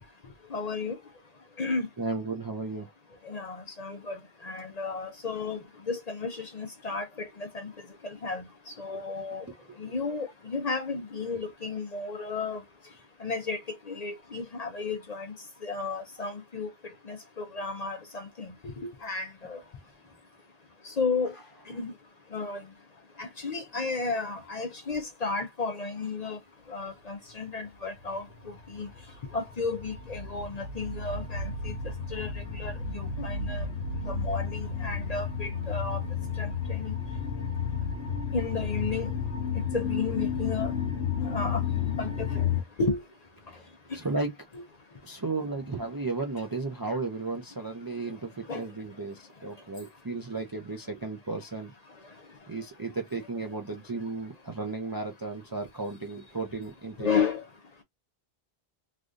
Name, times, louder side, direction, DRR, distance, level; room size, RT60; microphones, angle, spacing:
voice 1, 0.5-1.0 1.6-1.9 3.2-7.7 8.0-9.5 9.8-12.6 13.2-15.3 15.6-16.7 17.0-19.6 20.8-21.3 21.7-21.9 22.3-22.6 23.2-26.4 26.7-28.9 29.3-33.7 34.0-36.0 36.4-37.0 38.3-39.1 39.5-40.7 41.2-41.6 42.0-42.5 42.8-43.0 43.9-44.0 44.5-44.6 48.5-48.7 57.0-57.4, left 4 dB, 45° left, 0.6 m, -33 dB
voice 2, 2.0-2.9 9.5-9.8 43.5-43.7 43.9-44.3 45.0-51.7 52.5-57.1, right 3 dB, 35° right, 0.4 m, -34 dB
sound 1, 28.0-42.6, left 6 dB, 80° left, 1.0 m, -32 dB
3.3 x 2.4 x 2.5 m
omnidirectional pair, 1.1 m